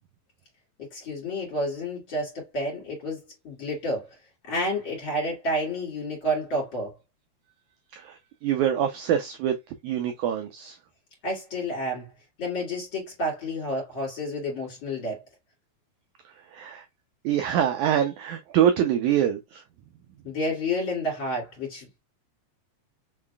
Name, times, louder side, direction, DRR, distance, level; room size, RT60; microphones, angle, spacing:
voice 1, 0.8-4.1 4.5-6.9 11.2-12.1 12.4-15.2 20.2-22.0, equal, 35° left, 3.3 m, -30 dB
voice 2, 8.4-9.5 9.8-10.8 16.5-16.8 17.2-19.6, right 10 dB, 85° right, 1.7 m, -24 dB
5.4 x 3.9 x 2.2 m
omnidirectional pair, 4.1 m